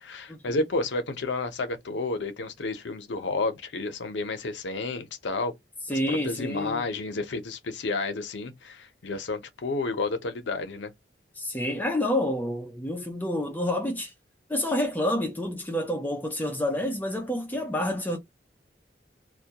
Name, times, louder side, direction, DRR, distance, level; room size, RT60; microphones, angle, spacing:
voice 1, 0.0-5.5 5.9-10.9, left 3 dB, 85° left, 0.6 m, -31 dB
voice 2, 5.9-6.8 11.4-14.1 14.5-18.2, left 1 dB, 10° left, 0.5 m, -28 dB
2.2 x 2.2 x 2.7 m
head